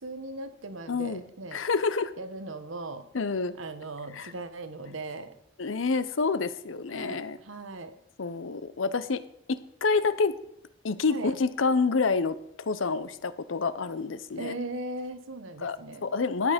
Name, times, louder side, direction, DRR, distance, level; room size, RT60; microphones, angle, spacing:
voice 1, 0.0-1.6 2.2-3.0 3.6-5.3 6.9-8.0 11.1-11.3 14.4-16.0, right 2 dB, 90° right, 10 dB, 1.2 m, -38 dB
voice 2, 0.9-1.2 1.5-2.1 3.1-3.5 4.1-4.3 5.6-7.4 8.2-9.2 9.5-10.4 10.8-14.5 15.6-15.8 16.0-16.5, left 4 dB, 80° left, 14 dB, 0.7 m, -28 dB
13.0 x 8.7 x 5.1 m, 0.77 s
head